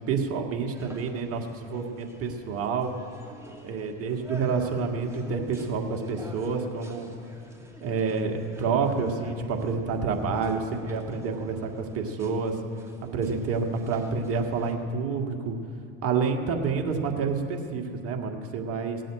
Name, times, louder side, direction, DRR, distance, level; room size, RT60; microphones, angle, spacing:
voice 1, 0.1-2.9 3.6-7.1 7.8-12.6 13.1-15.6 16.0-19.0, right 5 dB, 50° right, 3 dB, 1.9 m, -28 dB
sound 1, 0.7-14.7, equal, 10° right, 2.4 m, -49 dB
17.0 x 7.6 x 8.8 m, 2.5 s
hypercardioid pair, 85°, 29 cm